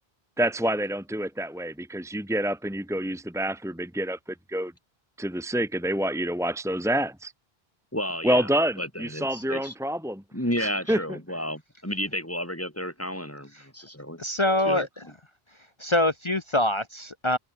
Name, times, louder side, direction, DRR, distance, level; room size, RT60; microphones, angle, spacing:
voice 1, 0.4-4.2 4.5-4.7 5.2-7.3 8.2-10.2 10.6-11.2, right 1 dB, 5° right, 1.9 m, -27 dB
voice 2, 7.9-9.7 10.3-14.2 14.6-14.9, equal, 15° left, 7.3 m, -32 dB
voice 3, 14.2-14.9 15.8-17.4, left 1 dB, 30° left, 0.9 m, -24 dB
omnidirectional pair, 1.0 m